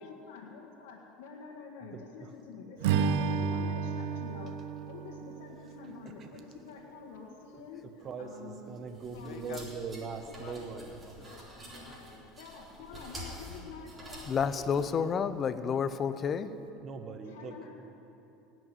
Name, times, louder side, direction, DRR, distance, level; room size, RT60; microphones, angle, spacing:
voice 1, 0.0-8.8 9.1-9.7 12.4-15.0 17.2-17.7, left 5 dB, 85° left, -1 dB, 1.6 m, -48 dB
voice 2, 1.9-2.3 6.2-6.3 8.0-11.1 16.8-17.7, right 5 dB, 35° right, 7 dB, 1.2 m, -41 dB
Strum, 2.8-7.2, right 6 dB, 80° right, 0.9 m, -33 dB
sound 1, 8.9-14.8, equal, 20° right, 3.8 m, -48 dB
voice 3, 9.1-9.6 9.9-12.3 12.9-13.1 13.4-13.7, left 7 dB, 65° left, 4 dB, 1.6 m, -50 dB
voice 4, 14.3-16.5, left 6 dB, 30° left, 12 dB, 0.6 m, -30 dB
18.0 x 6.2 x 9.3 m, 2.9 s
supercardioid pair, 125°, 0 cm